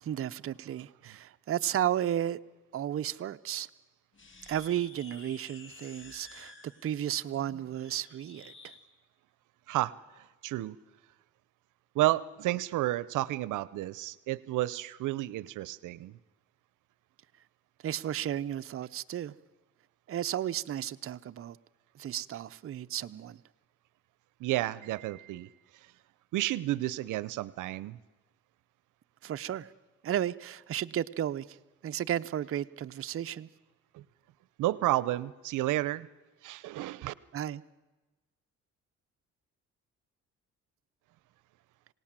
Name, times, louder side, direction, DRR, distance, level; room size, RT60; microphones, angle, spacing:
voice 1, 0.0-2.4 2.7-3.7 4.5-8.7 17.8-19.3 20.1-21.6 21.9-23.4 29.2-29.7 30.0-31.5 31.8-33.5 37.3-37.6, right 11 dB, 50° right, 0.6 m, -33 dB
sound 1, 4.1-8.8, left 3 dB, 40° left, 2.8 m, -52 dB
voice 2, 9.7-10.8 11.9-16.2 24.4-25.5 26.3-28.0 33.9-34.0 34.6-36.1 36.4-37.1, right 16 dB, 85° right, 0.7 m, -31 dB
27.0 x 18.0 x 7.5 m
cardioid pair, 90°, 30 cm